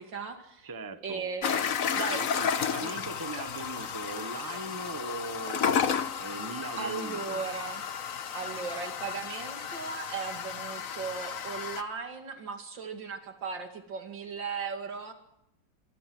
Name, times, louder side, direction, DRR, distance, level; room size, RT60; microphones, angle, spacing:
voice 1, 0.0-0.7 1.0-2.2 2.5-2.9 6.8-7.9 8.3-15.1, right 5 dB, 70° right, 5 dB, 3.0 m, -37 dB
voice 2, 0.6-1.3 2.1-5.7 6.2-7.5, right 3 dB, 15° right, 9 dB, 1.0 m, -40 dB
sound 1, 1.4-11.8, left 7 dB, 50° left, 1.3 m, -32 dB
25.5 x 24.0 x 6.1 m, 0.79 s
omnidirectional pair, 2.1 m